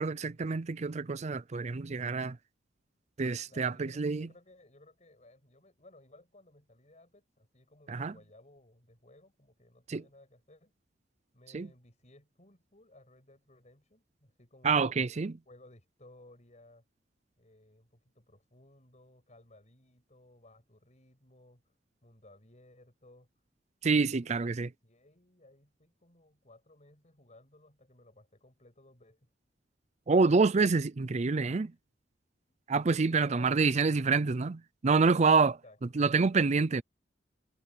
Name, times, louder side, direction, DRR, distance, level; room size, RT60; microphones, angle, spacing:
voice 1, 0.0-2.4 3.2-4.3 7.9-8.1 9.9-10.0 11.5-11.7 14.6-15.4 23.8-24.7 30.1-31.7 32.7-35.6 35.9-36.8, right 4 dB, 40° right, 0.5 m, -27 dB
voice 2, 3.4-10.7 11.3-15.0 15.5-16.9 17.4-21.6 22.0-23.3 23.9-29.3 32.9-33.7 35.3-35.8, left 1 dB, 40° left, 7.6 m, -59 dB
head